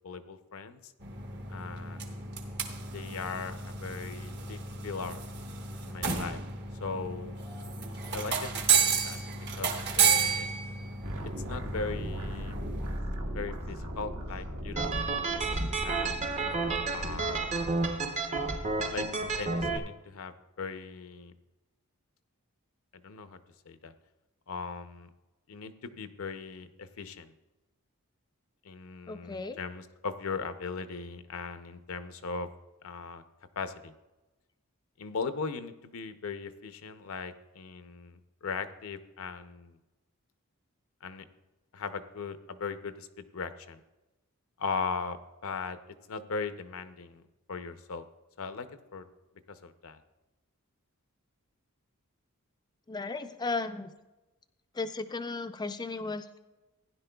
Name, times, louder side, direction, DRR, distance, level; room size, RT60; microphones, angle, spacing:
voice 1, 0.0-0.9 1.5-2.2 2.9-5.2 5.8-6.4 6.8-7.4 8.1-9.2 9.6-10.5 11.5-12.6 13.3-15.1 15.4-16.2 16.9-17.6 18.9-21.3 22.9-23.4 23.6-23.9 24.5-25.1 25.5-27.3 28.6-32.5 32.8-33.2 33.6-33.9 35.0-39.8 41.0-41.2 41.7-43.8 44.6-47.2 47.5-48.1 48.4-48.7 48.9-49.0 49.5-50.0, left 4 dB, 65° left, 10 dB, 0.6 m, -39 dB
sound 1, 1.0-13.0, right 6 dB, 50° right, 1.1 m, -32 dB
sound 2, 11.0-17.9, equal, 65° right, 1.4 m, -38 dB
sound 3, 14.8-19.8, right 3 dB, 30° right, 0.7 m, -31 dB
voice 2, 29.1-29.6 52.9-53.9 54.7-56.4, left 3 dB, 20° left, 9 dB, 0.4 m, -35 dB
15.5 x 10.5 x 2.3 m, 1.1 s
head